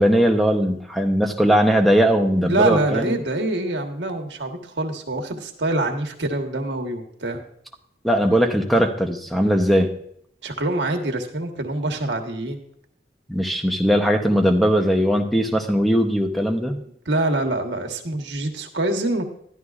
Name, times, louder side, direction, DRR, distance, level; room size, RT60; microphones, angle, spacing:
voice 1, 0.0-3.1 8.0-10.0 13.3-16.7, equal, ahead, 4 dB, 0.7 m, -19 dB
voice 2, 2.4-7.4 10.4-12.6 16.7-19.2, right 2 dB, 85° right, 3 dB, 1.2 m, -25 dB
13.0 x 11.0 x 2.4 m, 0.69 s
head